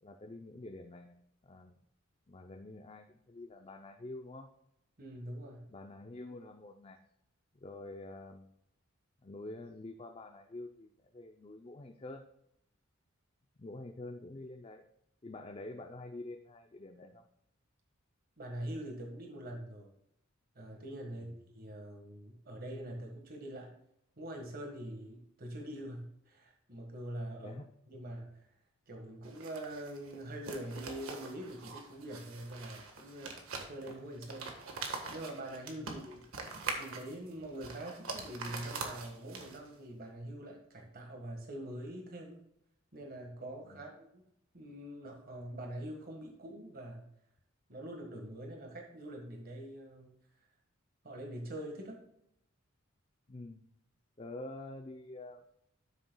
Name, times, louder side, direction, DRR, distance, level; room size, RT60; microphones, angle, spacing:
voice 1, 0.0-1.2 1.4-1.8 2.3-4.5 5.7-7.0 7.5-8.5 9.2-12.2 13.6-14.8 15.2-17.2 21.2-21.4 27.4-27.7 35.8-36.0 43.6-43.8 53.3-53.6 54.2-55.4, left 2 dB, 25° left, 5 dB, 0.5 m, -47 dB
voice 2, 5.0-5.7 18.4-19.9 20.5-23.7 24.2-27.6 27.9-28.5 28.9-33.3 33.7-34.5 35.1-36.2 36.8-42.4 42.9-44.2 44.5-47.1 47.7-50.1 51.0-52.0, right 1 dB, 45° right, 1 dB, 1.6 m, -44 dB
sound 1, 29.2-39.8, right 4 dB, 85° right, 1.4 m, -44 dB
12.5 x 6.6 x 2.3 m, 0.77 s
head